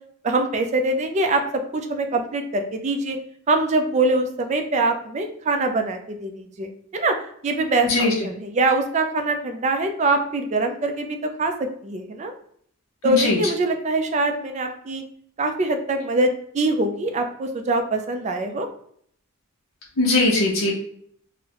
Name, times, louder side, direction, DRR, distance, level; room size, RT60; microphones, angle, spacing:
voice 1, 0.2-1.4 1.7-3.2 3.5-7.1 7.4-12.3 13.0-15.0 15.4-18.7, right 2 dB, 35° right, 5 dB, 0.4 m, -23 dB
voice 2, 13.0-13.4 20.0-20.7, left 2 dB, 90° left, -3 dB, 0.6 m, -20 dB
3.9 x 2.0 x 2.8 m, 0.65 s
head